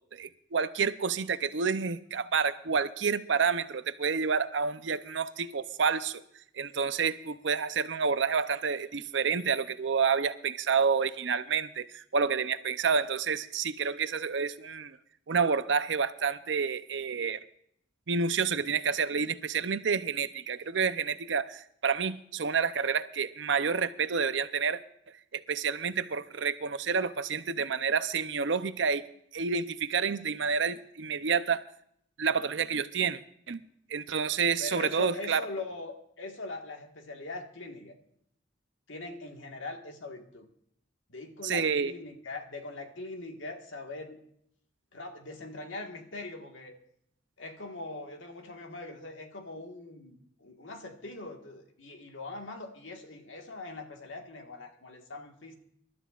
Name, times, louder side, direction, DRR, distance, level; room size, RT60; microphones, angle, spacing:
voice 1, 0.1-6.2 6.5-15.0 15.3-17.4 18.1-24.8 25.3-29.0 29.3-31.6 32.2-33.2 33.5-33.6 33.9-35.4 41.4-41.9, right 5 dB, 70° right, 12 dB, 0.6 m, -29 dB
voice 2, 34.6-37.9 38.9-40.5 41.1-44.2 44.9-46.7 47.4-55.5, left 2 dB, 80° left, 3 dB, 1.6 m, -41 dB
26.5 x 12.0 x 2.5 m, 0.71 s
head